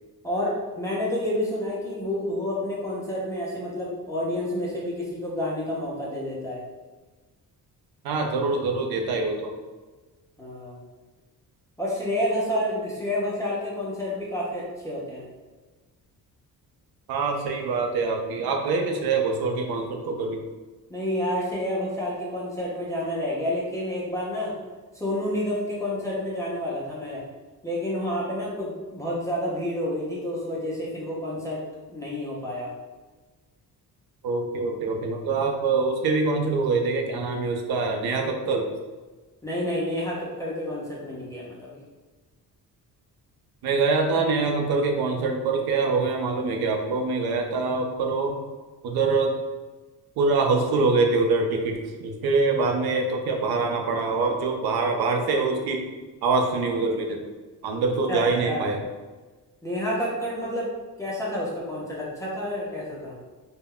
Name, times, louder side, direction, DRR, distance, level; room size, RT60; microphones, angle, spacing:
voice 1, 0.2-6.6 10.4-10.8 11.8-15.2 20.9-24.5 24.9-27.2 27.6-31.6 31.9-32.7 39.4-41.8 58.1-58.7 59.6-60.7 61.0-63.1, left 1 dB, 10° left, -6 dB, 0.4 m, -29 dB
voice 2, 8.0-9.5 17.1-20.4 34.2-38.7 43.6-48.4 48.8-49.3 50.2-55.8 56.2-57.2 57.6-58.8, right 3 dB, 75° right, 3 dB, 0.5 m, -24 dB
2.1 x 2.1 x 3.5 m, 1.3 s
cardioid pair, 170°, 37 cm